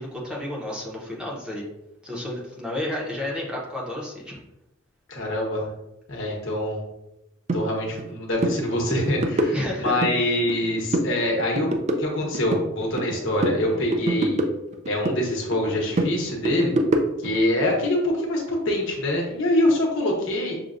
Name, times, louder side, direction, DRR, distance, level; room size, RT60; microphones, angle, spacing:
voice 1, 0.0-1.6 2.0-4.4 9.5-10.3, left 1 dB, 5° right, -4 dB, 0.7 m, -31 dB
voice 2, 5.1-5.7 6.1-6.9 7.5-14.4 14.9-16.7 17.2-20.5, left 1 dB, 65° left, -1 dB, 1.0 m, -25 dB
sound 1, 7.5-7.6 8.0-8.1 8.4-8.6 8.9-10.1 10.5-11.1 11.4-13.1 13.4-15.2 15.5-17.4, right 1 dB, 35° right, 0.4 m, -25 dB
6.4 x 2.2 x 2.5 m, 0.93 s
head